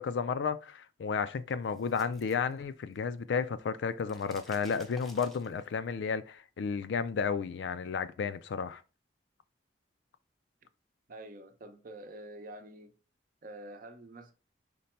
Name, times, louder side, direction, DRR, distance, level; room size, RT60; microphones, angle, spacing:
voice 1, 0.0-8.8, left 6 dB, 80° left, 0.4 m, -32 dB
sound 1, 1.5-3.2 3.5-5.9, right 1 dB, ahead, 0.6 m, -54 dB
voice 2, 11.1-12.9 13.4-14.3, right 1 dB, 50° right, 0.6 m, -47 dB
5.2 x 2.2 x 4.1 m
head